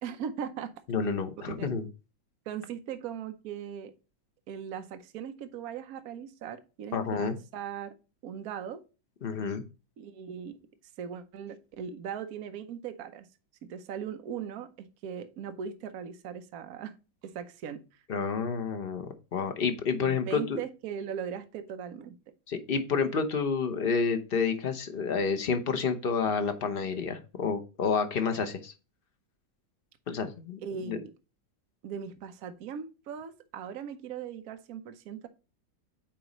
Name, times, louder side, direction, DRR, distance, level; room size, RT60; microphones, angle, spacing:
voice 1, 0.0-0.7 1.5-1.7 2.5-3.9 4.5-7.9 8.2-8.8 10.0-10.6 11.0-13.3 13.6-16.9 17.2-18.0 19.9-22.1 30.6-31.1 31.8-35.3, right 8 dB, 60° right, 1.1 m, -39 dB
voice 2, 0.9-1.8 6.9-7.3 9.2-9.6 18.1-20.6 22.5-28.7 30.1-30.6 30.9-31.0, left 5 dB, 60° left, 0.5 m, -29 dB
8.8 x 3.0 x 5.2 m
omnidirectional pair, 2.1 m